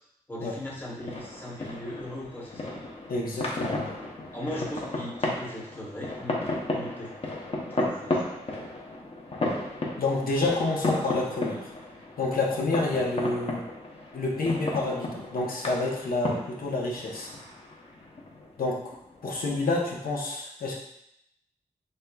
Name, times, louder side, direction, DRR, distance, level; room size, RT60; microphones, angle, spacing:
voice 1, 0.3-2.7 4.3-6.4 6.7-7.1 7.6-8.2, left 1 dB, 15° left, -4 dB, 1.0 m, -38 dB
sound 1, 0.6-19.9, left 2 dB, 45° left, 0.7 m, -34 dB
voice 2, 3.1-3.9 10.0-11.7 12.2-13.6 14.1-17.3 18.6-18.8 19.2-20.8, left 2 dB, 80° left, -2 dB, 0.9 m, -28 dB
5.4 x 3.3 x 2.3 m, 0.80 s
wide cardioid pair, 135°, 15 cm